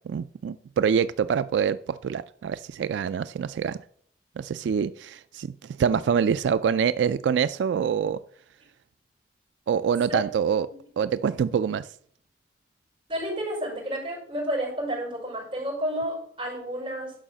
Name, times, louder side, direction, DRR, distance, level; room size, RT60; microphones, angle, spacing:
voice 1, 0.0-3.8 4.4-5.5 5.8-8.2 9.7-10.7 11.0-11.9, right 7 dB, 90° right, 0.3 m, -25 dB
voice 2, 13.1-17.1, equal, 30° right, 5.3 m, -30 dB
11.5 x 5.5 x 6.2 m
head